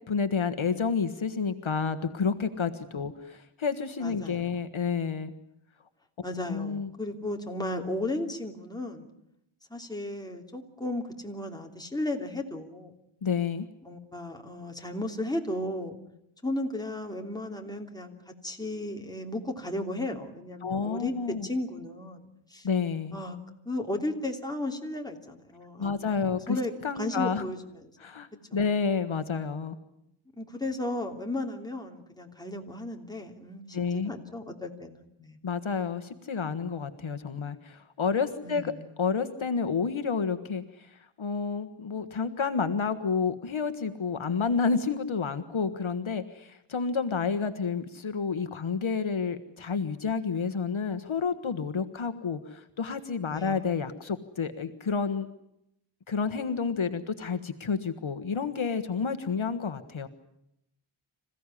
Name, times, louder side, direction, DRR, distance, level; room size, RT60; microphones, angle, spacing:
voice 1, 0.1-5.3 6.5-6.9 13.2-13.7 20.6-21.5 22.6-23.2 25.8-26.6 26.8-27.5 28.0-29.8 33.7-34.1 35.4-38.7 39.0-55.3 56.1-60.1, left 5 dB, 70° left, 10 dB, 1.5 m, -30 dB
voice 2, 4.0-4.5 6.2-9.0 9.7-12.9 13.8-16.0 16.4-22.7 23.1-23.4 23.6-26.1 26.5-26.7 27.0-27.9 30.4-35.4 38.4-38.9 53.3-53.6, left 1 dB, 10° left, 2 dB, 3.1 m, -35 dB
26.5 x 16.0 x 9.9 m, 0.80 s
wide cardioid pair, 95°, 49 cm